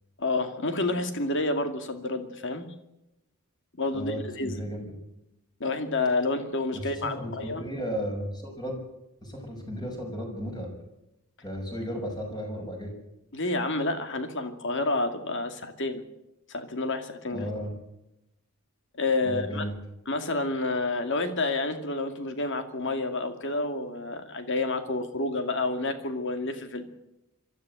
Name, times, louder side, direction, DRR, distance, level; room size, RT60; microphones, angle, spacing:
voice 1, 0.2-2.7 3.8-4.6 5.6-7.6 13.3-16.0 16.5-17.5 19.0-19.7 20.1-26.9, left 2 dB, 55° left, 7 dB, 2.4 m, -29 dB
voice 2, 3.9-4.9 6.7-8.8 9.2-10.7 11.4-12.9 17.3-17.7 19.2-19.7, equal, 20° left, 1 dB, 6.4 m, -34 dB
24.0 x 13.5 x 8.1 m, 0.88 s
head